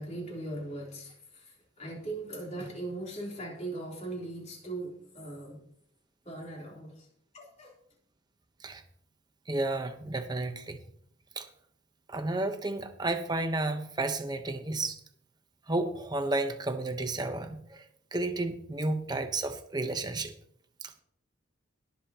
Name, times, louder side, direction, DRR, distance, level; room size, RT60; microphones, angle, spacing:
voice 1, 0.0-5.6 6.3-7.1 7.3-7.7, right 2 dB, 35° left, -2 dB, 3.5 m, -39 dB
voice 2, 9.5-10.8 11.4-11.5 12.1-15.0 15.7-17.9 18.1-20.3 20.8-20.9, right 2 dB, 20° right, 7 dB, 0.9 m, -32 dB
21.0 x 7.2 x 2.9 m, 0.67 s
head